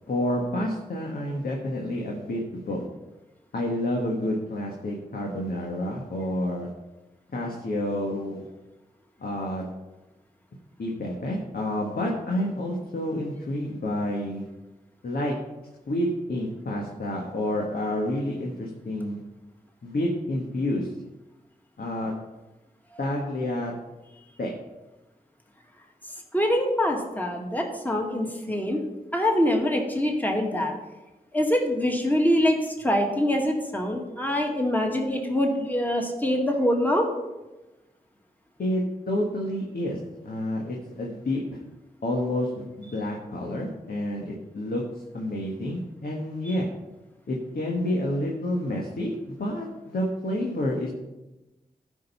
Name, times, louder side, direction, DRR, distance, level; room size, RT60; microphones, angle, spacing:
voice 1, 0.1-2.8 3.5-6.7 7.3-8.5 9.2-9.7 10.8-14.4 15.0-15.3 15.9-19.2 19.8-20.9 21.8-22.1 23.0-23.7 24.4-24.5 38.6-41.4 42.0-42.5 42.8-44.8 45.1-46.7 47.3-50.9, left 1 dB, 70° left, -1 dB, 1.6 m, -29 dB
voice 2, 26.3-28.8 29.1-30.7 31.3-37.1, left 1 dB, 10° left, 1 dB, 2.0 m, -24 dB
12.5 x 5.3 x 5.6 m, 1.1 s
cardioid pair, 45°, 16 cm